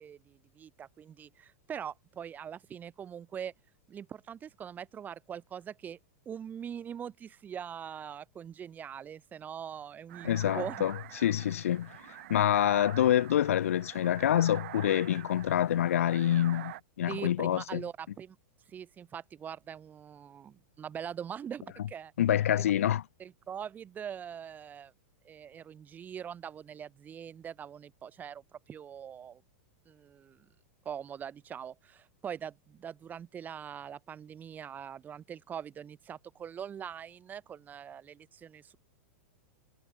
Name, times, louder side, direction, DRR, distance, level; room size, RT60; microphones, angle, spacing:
voice 1, 0.0-3.5 3.9-6.0 6.2-10.8 17.1-18.4 18.7-22.1 22.6-22.7 23.2-24.9 25.2-29.4 29.9-30.5 30.8-38.8, right 8 dB, 25° right, 4.7 m, -42 dB
sound 1, 10.1-16.8, right 16 dB, 65° right, 6.6 m, -46 dB
voice 2, 10.2-11.9 12.3-17.8 22.2-23.0, left 11 dB, 80° left, 2.6 m, -27 dB
hypercardioid pair, 125°, 7 cm